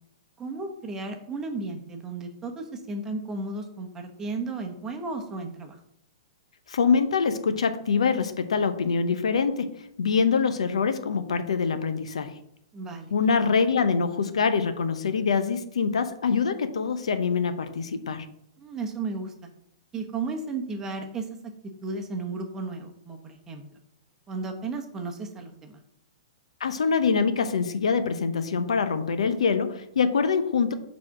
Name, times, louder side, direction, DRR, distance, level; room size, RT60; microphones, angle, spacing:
voice 1, 0.4-5.7 12.7-13.1 18.6-19.3 19.9-21.3 21.8-23.6 24.3-25.8, right 3 dB, 15° right, 4 dB, 1.0 m, -34 dB
voice 2, 6.7-9.7 10.0-12.3 13.1-18.3 26.6-30.7, left 5 dB, 85° left, 10 dB, 0.7 m, -24 dB
4.9 x 4.1 x 5.8 m, 0.73 s
hypercardioid pair, 140°, 3 cm